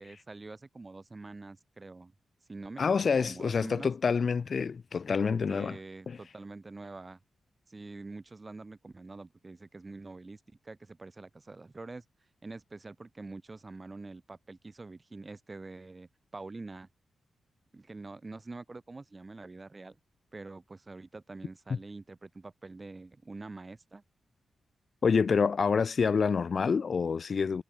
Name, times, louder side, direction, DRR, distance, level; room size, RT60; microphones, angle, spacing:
voice 1, 0.0-2.1 2.5-3.9 5.5-7.2 7.7-12.0 12.4-16.9 17.7-20.0 20.3-24.0, right 3 dB, 25° right, 4.6 m, -45 dB
voice 2, 2.8-5.8 6.1-6.2 25.0-27.6, left 5 dB, 50° left, 1.1 m, -27 dB
wide cardioid pair, 115°, 0 cm